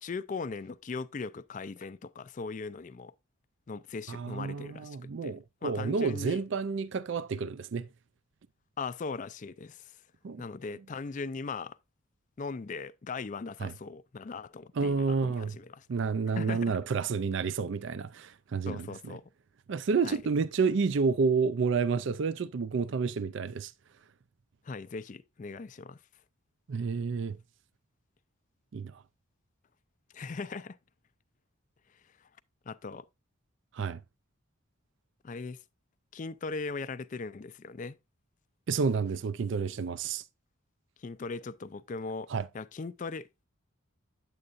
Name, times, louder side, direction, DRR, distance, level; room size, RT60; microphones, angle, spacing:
voice 1, 0.0-3.1 3.7-6.4 8.8-9.9 10.4-11.8 12.4-15.9 16.4-16.7 18.7-19.2 20.0-20.2 24.7-26.0 30.1-30.8 32.7-33.0 35.2-35.6 36.1-38.0 41.0-42.3 42.5-43.2, left 4 dB, 35° left, 0.4 m, -39 dB
voice 2, 4.1-7.9 10.2-10.4 13.6-13.7 14.8-15.5 15.9-19.2 19.7-23.7 26.7-27.4 28.7-29.0 33.7-34.0 38.7-40.2 42.3-42.5, right 5 dB, 55° right, 0.4 m, -30 dB
9.6 x 7.8 x 2.5 m
head